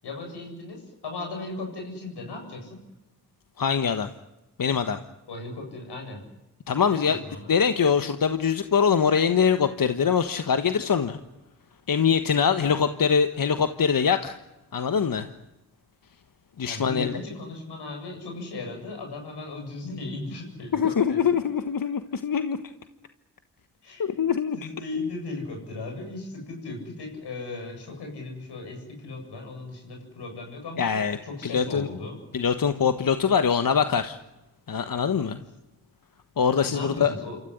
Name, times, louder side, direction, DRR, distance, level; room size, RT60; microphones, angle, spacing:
voice 1, 0.0-2.8 5.3-6.2 6.9-7.5 12.7-12.9 16.7-21.4 23.8-24.3 24.5-30.9 31.2-32.2 36.6-37.4, left 3 dB, 85° left, 3 dB, 7.8 m, -37 dB
voice 2, 3.6-4.1 4.6-5.0 6.7-7.2 7.5-11.2 11.9-14.4 14.7-15.3 16.6-17.1 20.7-22.6 24.0-24.6 30.8-31.2 31.4-31.9 32.3-34.2 34.7-35.4 36.4-37.1, left 7 dB, 55° left, 9 dB, 1.4 m, -23 dB
27.5 x 14.5 x 10.0 m, 1.0 s
cardioid pair, 45°, 39 cm